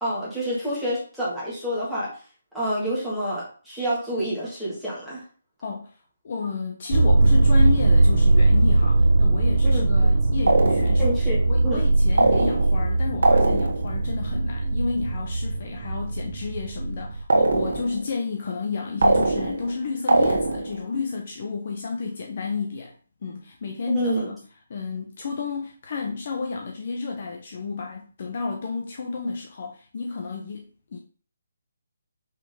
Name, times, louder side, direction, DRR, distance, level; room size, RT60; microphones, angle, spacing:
voice 1, 0.0-2.1 2.5-5.2 9.6-9.9 11.0-11.8 23.9-24.3, right 1 dB, ahead, -10 dB, 1.7 m, -28 dB
voice 2, 6.2-11.1 11.5-22.9 23.2-24.4 24.7-31.0, left 4 dB, 30° left, 1 dB, 0.8 m, -31 dB
sound 1, 6.9-17.2, right 2 dB, 45° right, 0.6 m, -20 dB
sound 2, 10.5-11.2 12.2-12.9 13.2-14.0 17.3-18.0 19.0-19.7 20.1-20.8, right 2 dB, 75° right, 1.4 m, -21 dB
5.5 x 3.7 x 5.3 m, 0.40 s
hypercardioid pair, 180°, 0 cm